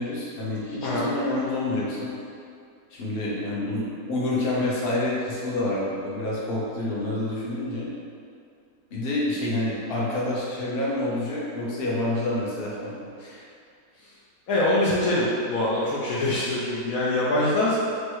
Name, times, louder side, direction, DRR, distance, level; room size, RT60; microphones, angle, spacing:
voice 1, 0.0-2.1 2.9-7.9 8.9-12.9 13.2-13.4, left 2 dB, 45° left, -6 dB, 1.0 m, -28 dB
voice 2, 14.5-17.8, left 1 dB, 70° left, -7 dB, 1.0 m, -24 dB
3.2 x 3.1 x 4.5 m, 2.4 s
omnidirectional pair, 1.7 m